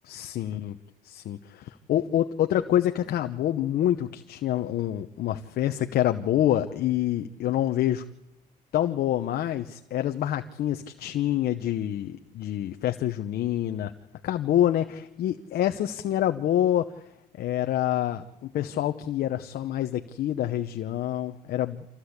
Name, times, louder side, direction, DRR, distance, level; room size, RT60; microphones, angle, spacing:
voice 1, 0.1-0.8 1.0-8.0 8.7-13.9 14.2-16.9 17.3-21.9, left 12 dB, 65° left, 7 dB, 1.0 m, -27 dB
26.5 x 15.5 x 8.2 m, 0.95 s
cardioid pair, 110°, 17 cm